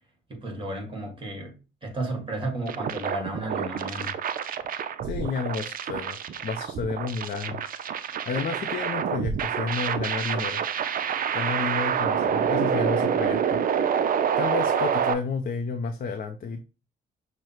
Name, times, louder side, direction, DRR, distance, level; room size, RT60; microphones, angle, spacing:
voice 1, 0.3-1.5 1.8-4.1, right 1 dB, 25° right, 1.7 m, -33 dB
sound 1, 2.7-15.1, right 8 dB, 45° right, 0.4 m, -27 dB
voice 2, 5.0-7.6 8.2-10.6 11.3-13.6 14.4-16.6, left 5 dB, 45° left, 0.5 m, -31 dB
6.3 x 2.1 x 2.9 m
cardioid pair, 90°, 20 cm